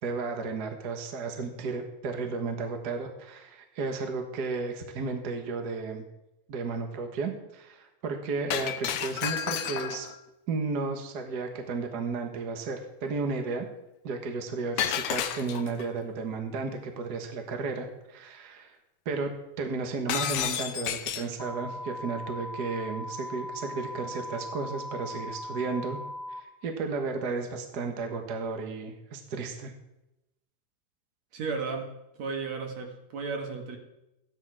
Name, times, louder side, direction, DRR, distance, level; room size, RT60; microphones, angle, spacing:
voice 1, 0.0-6.0 6.5-10.1 10.5-13.7 14.0-18.8 19.0-19.3 19.6-26.0 26.3-29.7, right 4 dB, 45° right, 4 dB, 1.5 m, -33 dB
Shatter, 8.5-10.2 14.8-15.8 20.1-21.4, left 10 dB, 75° left, 1.3 m, -31 dB
sound 1, 21.4-26.4, left 1 dB, 40° left, 0.9 m, -39 dB
voice 2, 31.3-33.8, right 4 dB, 65° right, 2 dB, 2.9 m, -34 dB
14.5 x 10.5 x 4.8 m, 0.90 s
omnidirectional pair, 3.4 m